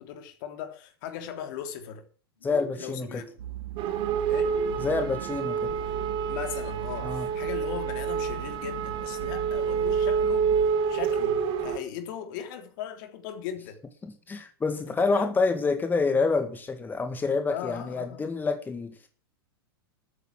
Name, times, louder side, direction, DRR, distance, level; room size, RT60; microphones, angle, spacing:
voice 1, 0.0-2.1 2.7-3.3 4.3-4.6 6.3-10.5 10.9-13.8 14.9-15.4 17.5-18.4, left 9 dB, 55° left, 3.4 m, -38 dB
sound 1, 2.4-3.3 4.4-5.3, left 1 dB, 75° left, 5.9 m, -44 dB
voice 2, 2.4-3.2 4.8-5.7 7.0-7.3 14.0-19.1, left 4 dB, 15° left, 1.9 m, -27 dB
sound 2, 3.4-10.7, right 12 dB, 70° right, 7.7 m, -39 dB
sound 3, 3.8-11.8, right 6 dB, 40° right, 2.2 m, -28 dB
13.5 x 9.3 x 7.6 m
hypercardioid pair, 105°, 13 cm